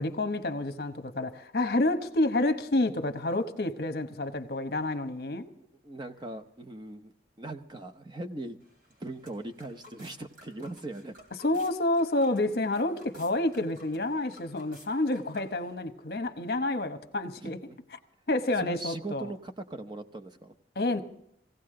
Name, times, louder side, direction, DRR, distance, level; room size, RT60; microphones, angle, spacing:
voice 1, 0.0-5.5 11.4-17.6 18.3-19.3 20.8-21.0, left 2 dB, 60° left, 1.0 m, -29 dB
voice 2, 5.8-7.1 7.4-8.6 9.0-11.1 17.4-17.8 18.6-20.5, right 2 dB, 25° right, 0.7 m, -40 dB
sound 1, 8.6-15.7, equal, 55° right, 3.1 m, -55 dB
18.5 x 16.0 x 3.8 m
head